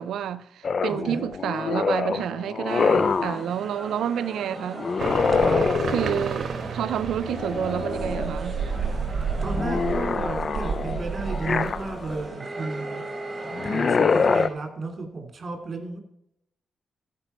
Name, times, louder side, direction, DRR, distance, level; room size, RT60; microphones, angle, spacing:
voice 1, 0.0-4.8 5.9-8.6, right 9 dB, 80° right, 0.5 m, -29 dB
sound 1, 0.6-3.4 4.8-6.3 7.3-8.3 8.7-12.2 13.5-14.5, left 5 dB, 50° left, 0.4 m, -25 dB
voice 2, 0.9-1.2 5.3-5.7 9.3-13.0 13.6-16.0, right 3 dB, 40° right, 2.8 m, -33 dB
sound 2, 2.7-14.5, right 2 dB, 25° right, 4.3 m, -37 dB
sound 3, 5.0-12.3, right 6 dB, 60° right, 1.1 m, -31 dB
15.0 x 5.2 x 4.4 m
cardioid pair, 70°, 0 cm